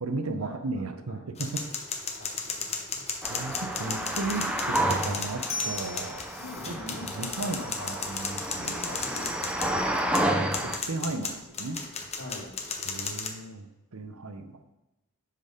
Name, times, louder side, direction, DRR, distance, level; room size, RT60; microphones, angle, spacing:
voice 1, 0.0-1.6 3.3-6.2 6.7-6.8 7.1-8.7 10.9-11.8 12.9-13.7 13.9-14.6, right 3 dB, 75° right, 8 dB, 0.7 m, -35 dB
voice 2, 1.1-1.5 2.2-3.1 6.4-8.0 8.6-10.4 12.2-12.5, left 1 dB, 70° left, -6 dB, 3.0 m, -44 dB
sound 1, 1.4-13.3, left 4 dB, 30° left, 0.8 m, -35 dB
sound 2, 3.2-10.8, right 1 dB, 5° right, 0.5 m, -31 dB
6.6 x 5.3 x 5.0 m, 0.98 s
head